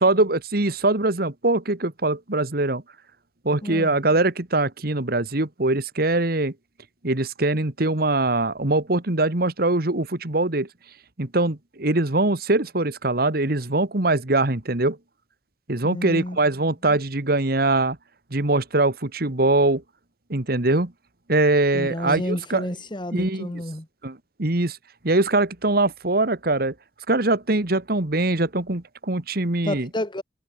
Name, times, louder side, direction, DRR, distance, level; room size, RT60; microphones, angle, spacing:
voice 1, 0.0-2.8 3.5-6.5 7.0-10.7 11.2-15.0 15.7-18.0 18.3-19.8 20.3-20.9 21.3-22.6 23.1-23.5 24.0-24.8 25.0-26.7 27.1-29.9, right 2 dB, 60° right, 1.9 m, -22 dB
voice 2, 3.6-4.0 15.8-16.4 16.9-17.0 21.7-23.9 29.6-30.2, left 1 dB, 25° left, 2.1 m, -30 dB
head